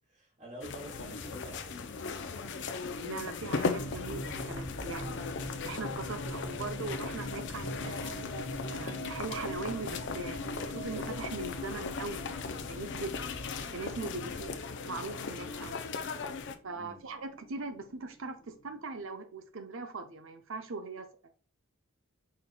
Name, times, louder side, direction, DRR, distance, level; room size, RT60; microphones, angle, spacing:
voice 1, 0.1-2.2 14.2-14.4 16.7-17.0, right 1 dB, 35° right, 2.2 m, -48 dB
sound 1, 0.6-16.6, left 4 dB, 55° left, 0.5 m, -38 dB
sound 2, 0.9-19.0, left 2 dB, 40° left, 0.9 m, -51 dB
voice 2, 3.0-5.3 5.6-8.2 8.7-13.3 13.7-14.5 14.8-15.8 16.6-21.3, right 3 dB, 60° right, 0.7 m, -40 dB
sound 3, 3.7-14.6, left 1 dB, 85° left, 1.0 m, -41 dB
5.1 x 4.2 x 2.2 m
head